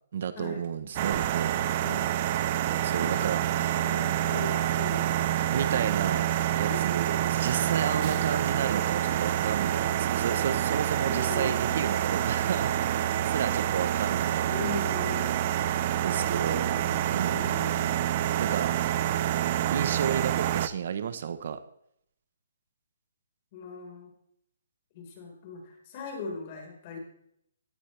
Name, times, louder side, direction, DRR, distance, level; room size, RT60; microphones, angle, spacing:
voice 1, 0.1-1.6 2.8-3.7 5.5-6.3 6.6-13.0 13.3-14.6 16.0-16.7 17.1-17.5 18.4-18.7 19.7-21.6, right 7 dB, 55° right, 12 dB, 1.1 m, -32 dB
sound 1, 1.0-20.7, right 11 dB, 35° right, 0.7 m, -27 dB
voice 2, 1.8-2.1 3.0-6.2 6.6-6.8 8.0-8.3 11.1-11.9 14.5-15.4 16.2-18.0 23.5-24.1 24.9-27.0, left 4 dB, 35° left, 1 dB, 4.8 m, -40 dB
18.0 x 13.0 x 3.4 m, 0.72 s
hypercardioid pair, 160°, 0 cm